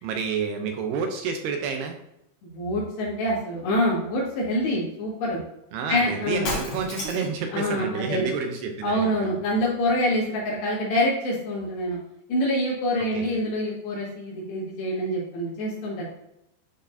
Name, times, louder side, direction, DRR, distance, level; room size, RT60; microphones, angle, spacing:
voice 1, 0.0-2.0 5.7-9.4 13.0-13.3, right 5 dB, 80° right, 4 dB, 2.6 m, -29 dB
voice 2, 2.4-5.4 5.9-6.5 7.5-8.3 8.8-12.0 12.3-16.0, left 1 dB, 75° left, -6 dB, 3.9 m, -26 dB
Shatter, 6.4-7.4, left 2 dB, 45° left, 2.2 m, -31 dB
10.5 x 4.5 x 2.6 m, 0.81 s
omnidirectional pair, 4.9 m